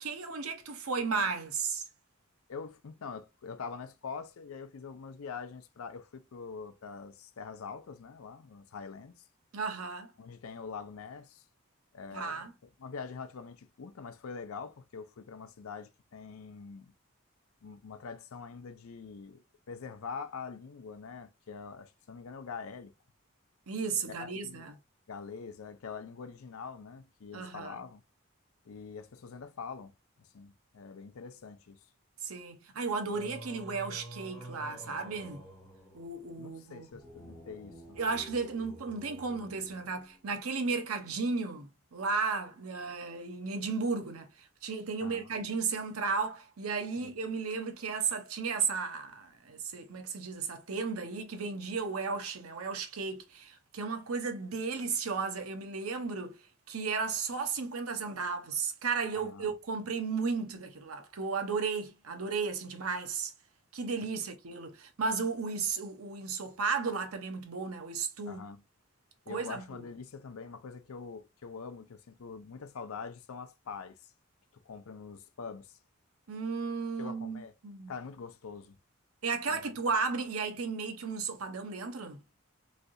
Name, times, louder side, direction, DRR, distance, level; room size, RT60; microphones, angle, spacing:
voice 1, 0.0-1.8 9.5-10.1 12.1-12.5 23.7-24.7 27.3-27.8 32.2-35.4 35.9-36.9 38.0-63.3 63.7-68.4 69.3-69.9 76.3-77.9 79.2-82.2, right 4 dB, 85° right, 0.8 m, -34 dB
voice 2, 2.5-9.2 10.2-11.4 11.9-12.5 12.8-16.9 17.6-22.9 24.0-24.7 25.1-28.0 28.6-31.8 36.3-38.0 45.0-45.3 47.0-47.1 59.1-59.5 68.3-68.6 69.3-74.1 74.5-75.8 77.0-77.5 77.9-78.7 79.5-79.7, left 5 dB, 75° left, 0.5 m, -44 dB
Singing, 33.1-40.5, equal, 5° left, 1.5 m, -50 dB
3.2 x 2.7 x 2.5 m
head